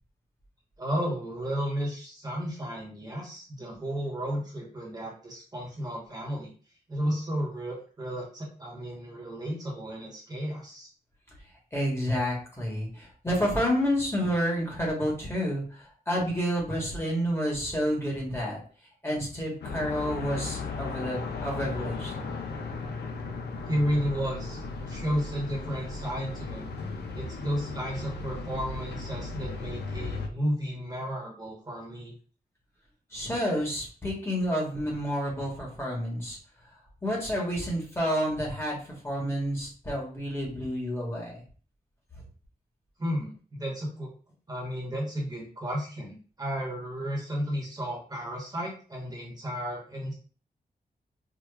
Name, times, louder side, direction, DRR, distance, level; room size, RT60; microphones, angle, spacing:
voice 1, 0.8-6.5 6.9-10.9 23.7-24.6 24.9-26.7 27.1-32.1 43.0-44.1 44.5-50.1, equal, 25° right, -3 dB, 1.0 m, -33 dB
voice 2, 11.7-18.6 19.0-22.2 33.1-36.4 37.0-41.4, equal, 15° left, -3 dB, 1.1 m, -29 dB
sound 1, 19.6-30.3, left 3 dB, 85° left, 0.5 m, -36 dB
4.7 x 2.2 x 2.3 m, 0.41 s
wide cardioid pair, 145°, 17 cm